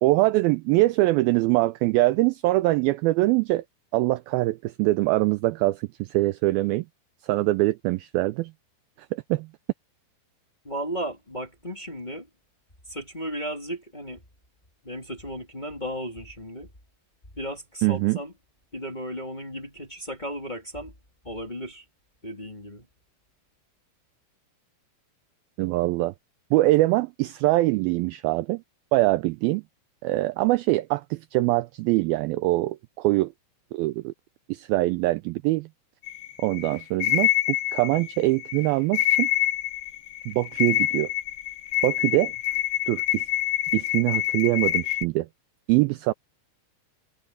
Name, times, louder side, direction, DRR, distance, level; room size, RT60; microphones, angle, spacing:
voice 1, 0.0-3.6 3.9-6.9 7.2-8.5 9.1-9.5 17.8-18.2 25.6-26.1 26.5-28.6 28.9-29.6 30.0-33.3 33.7-34.1 34.5-35.7 36.4-37.3 37.7-39.3 40.3-41.1 41.8-42.3 42.9-43.2 43.7-45.3 45.7-46.1, right 19 dB, 85° right, 2.1 m, -23 dB
voice 2, 10.6-12.3 12.9-14.2 14.8-16.7 17.3-18.3 18.7-20.9 21.2-21.8 22.2-22.9, equal, 15° left, 2.2 m, -35 dB
sound 1, 36.0-45.1, left 15 dB, 85° left, 3.3 m, -26 dB
omnidirectional pair, 4.9 m